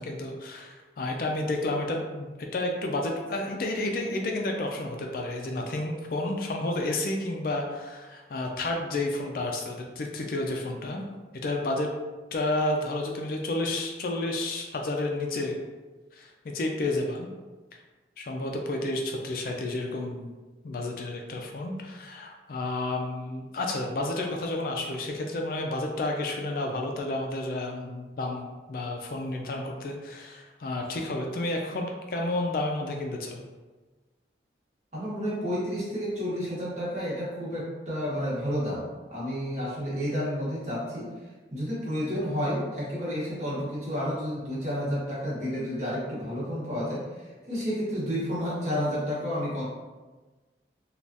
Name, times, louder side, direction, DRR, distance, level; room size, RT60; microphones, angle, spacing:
voice 1, 0.0-11.0 11.4-11.9 12.3-15.6 16.1-17.3 18.2-20.3 20.6-33.4, left 2 dB, 50° left, 2 dB, 0.3 m, -31 dB
voice 2, 34.9-41.1 41.5-49.6, equal, 40° right, -7 dB, 1.0 m, -31 dB
3.3 x 2.3 x 2.6 m, 1.3 s
head